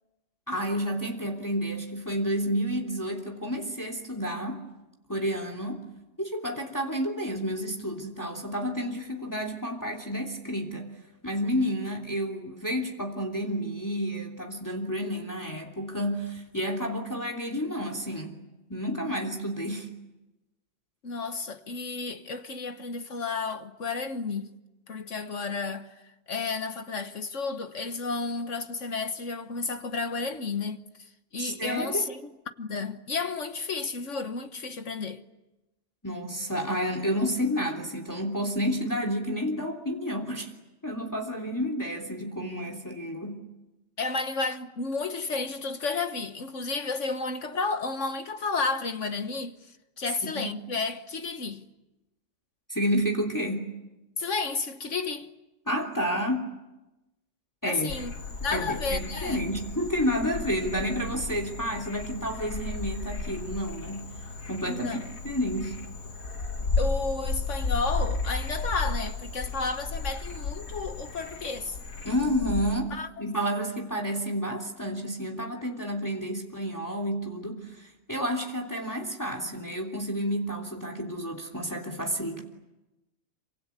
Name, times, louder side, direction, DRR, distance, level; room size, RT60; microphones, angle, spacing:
voice 1, 0.5-4.6 5.1-5.9 6.2-10.9 11.2-18.4 18.7-19.9 31.4-32.0 36.0-40.5 40.8-43.4 50.3-50.5 52.7-53.7 55.7-56.5 57.6-57.9 58.5-64.1 64.5-64.9 65.2-65.8 72.0-82.4, equal, 15° left, 3.1 m, -30 dB
voice 2, 21.0-24.5 24.9-32.3 32.6-35.2 44.0-51.6 54.2-55.3 57.6-58.1 58.4-59.4 64.7-65.1 66.6-71.8 72.9-73.1, left 4 dB, 60° left, 1.6 m, -32 dB
Frog, 57.9-72.8, left 3 dB, 80° left, 2.4 m, -34 dB
27.5 x 25.5 x 8.4 m
omnidirectional pair, 1.4 m